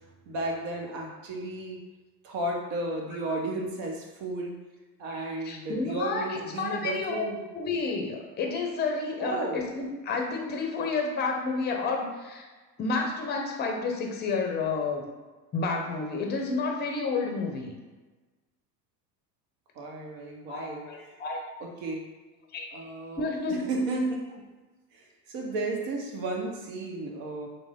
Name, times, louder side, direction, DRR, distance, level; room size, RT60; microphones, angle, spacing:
voice 1, 0.3-1.8 2.2-4.6 5.0-7.4 9.2-9.6 19.8-20.9 21.6-22.0 22.7-24.3 24.9-27.5, right 2 dB, 55° right, 1 dB, 0.9 m, -33 dB
voice 2, 5.4-7.2 7.5-12.4 12.8-15.0 15.5-17.7 20.5-21.4 22.5-22.7 23.2-23.7, left 4 dB, 20° left, 2 dB, 0.6 m, -30 dB
3.3 x 2.1 x 3.5 m, 1.3 s
hypercardioid pair, 80°, 50 cm